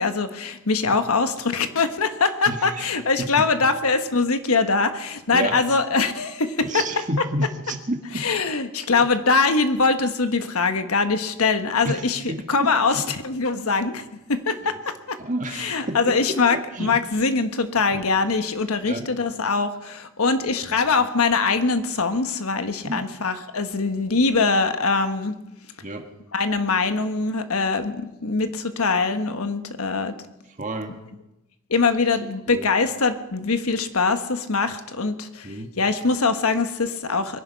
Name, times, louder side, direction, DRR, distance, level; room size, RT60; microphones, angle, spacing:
voice 1, 0.0-6.8 8.2-12.2 12.5-14.0 14.3-15.2 15.5-25.3 26.3-30.1 31.7-37.4, left 4 dB, 90° left, 9 dB, 1.3 m, -23 dB
voice 2, 2.5-2.9 3.2-3.7 5.3-5.6 6.6-8.2 11.8-13.1 15.2-17.0 17.9-18.0 18.8-19.0 20.7-20.8 22.8-23.0 25.8-26.1 30.6-30.9 32.5-32.7 35.4-35.7, right 1 dB, 35° right, 5 dB, 1.6 m, -30 dB
23.0 x 10.5 x 5.7 m, 0.94 s
head